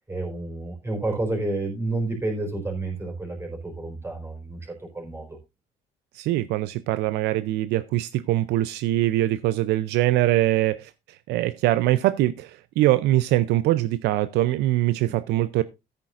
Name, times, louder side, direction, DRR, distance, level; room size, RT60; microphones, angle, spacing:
voice 1, 0.1-5.4, right 2 dB, 15° right, 4.5 m, -30 dB
voice 2, 6.1-10.9 11.3-15.6, right 15 dB, 85° right, 0.5 m, -23 dB
14.0 x 9.0 x 2.5 m
cardioid pair, 110°, 17 cm